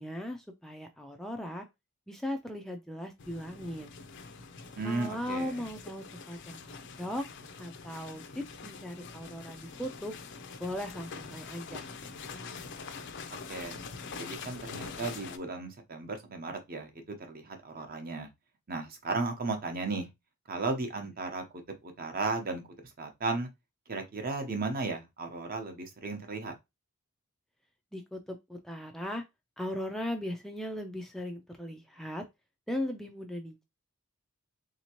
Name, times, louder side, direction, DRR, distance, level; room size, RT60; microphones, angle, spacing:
voice 1, 0.0-1.7 2.1-3.9 4.8-7.3 7.6-10.1 10.6-11.9 27.9-29.2 29.6-32.2 32.7-33.6, left 1 dB, ahead, 0.3 m, -38 dB
sound 1, 3.2-15.4, left 4 dB, 55° left, 0.5 m, -44 dB
voice 2, 4.7-5.7 13.3-13.8 14.2-18.3 18.7-20.1 20.5-21.4 21.8-22.6 23.0-23.5 23.9-26.5, right 3 dB, 45° right, 0.8 m, -35 dB
3.4 x 2.8 x 2.9 m
head